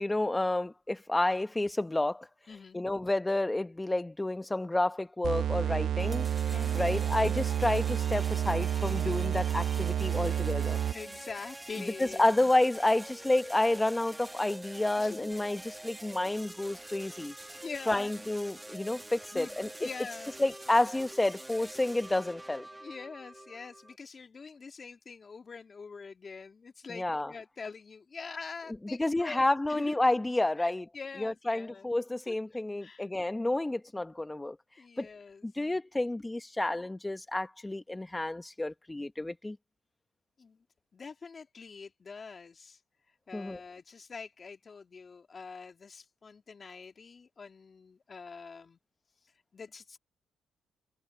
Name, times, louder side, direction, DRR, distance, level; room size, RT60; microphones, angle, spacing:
voice 1, 0.0-10.8 12.0-17.3 17.9-19.7 20.4-22.7 26.9-27.3 29.0-30.8 31.2-35.1 35.4-39.6 43.3-43.6, left 2 dB, 15° left, 0.9 m, -30 dB
voice 2, 2.5-2.8 6.5-7.1 10.9-12.2 15.0-15.3 17.6-18.1 19.3-20.4 22.8-30.0 30.5-31.9 32.3-33.1 34.8-35.4 40.4-40.6 40.9-42.8 43.1-48.8 49.2-50.0, left 5 dB, 40° left, 1.9 m, -45 dB
sound 1, 5.2-11.2, right 10 dB, 65° right, 0.7 m, -30 dB
sound 2, 6.0-24.0, right 1 dB, 10° right, 1.6 m, -46 dB
supercardioid pair, 70°, 0 cm